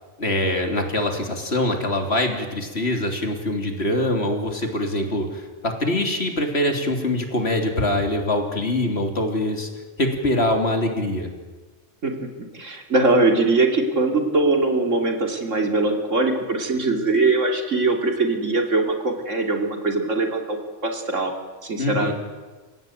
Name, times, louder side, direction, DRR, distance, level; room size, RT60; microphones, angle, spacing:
voice 1, 0.2-9.7 10.0-11.3 21.8-22.1, left 1 dB, 60° left, 3 dB, 3.6 m, -23 dB
voice 2, 12.0-21.3 21.6-22.1, right 3 dB, 85° right, 3 dB, 3.2 m, -22 dB
30.0 x 16.5 x 9.2 m, 1.4 s
omnidirectional pair, 1.2 m